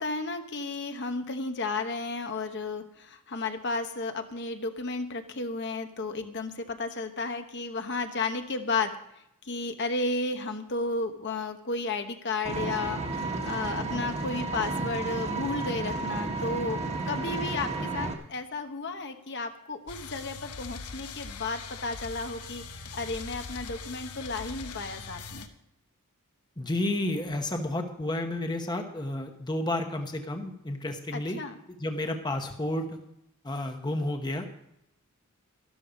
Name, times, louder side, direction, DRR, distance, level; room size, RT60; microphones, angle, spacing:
voice 1, 0.0-9.0 9.4-16.8 17.0-22.6 22.9-25.5 31.1-31.6, left 3 dB, 50° left, 6 dB, 1.1 m, -33 dB
Vehicle, 12.4-18.1, right 3 dB, 30° right, 1.6 m, -32 dB
sound 1, 19.9-25.5, left 4 dB, 90° left, 1.1 m, -41 dB
voice 2, 26.6-31.4 31.8-33.0 33.4-34.5, left 1 dB, 20° left, 5 dB, 1.0 m, -31 dB
13.0 x 12.5 x 5.1 m, 0.80 s
head